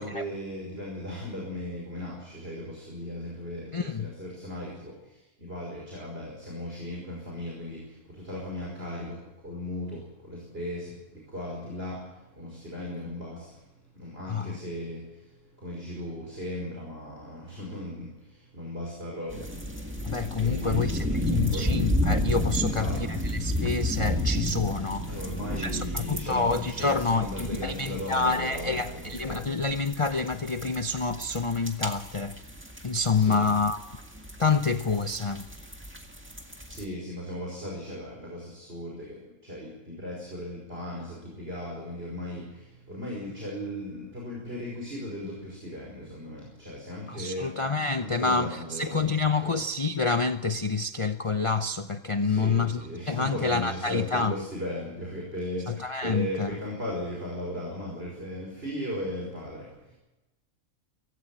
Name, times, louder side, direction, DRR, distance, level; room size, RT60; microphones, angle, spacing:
voice 1, 0.0-13.6 13.9-19.9 20.4-21.2 21.5-21.7 22.6-23.2 25.0-29.5 33.1-33.5 36.7-47.6 48.0-49.1 49.4-49.6 52.2-59.9, left 1 dB, 45° right, 5.5 m, -37 dB
voice 2, 3.7-4.1 14.2-14.6 20.0-25.1 25.6-32.4 32.8-33.8 34.4-35.5 47.1-54.3 55.7-56.5, left 4 dB, 35° left, 0.5 m, -28 dB
sound 1, 19.3-36.8, equal, 10° right, 1.8 m, -32 dB
18.5 x 16.0 x 9.0 m
omnidirectional pair, 1.4 m